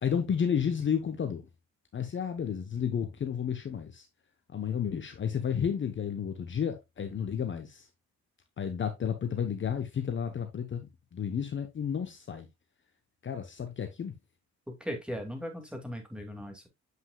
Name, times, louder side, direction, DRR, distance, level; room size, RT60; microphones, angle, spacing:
voice 1, 0.0-1.4 1.9-4.1 4.5-7.9 8.6-12.5 13.2-14.1, left 7 dB, 40° left, 0.9 m, -32 dB
voice 2, 14.8-16.7, equal, 5° right, 2.3 m, -38 dB
7.8 x 5.5 x 2.3 m
cardioid pair, 90°, 30 cm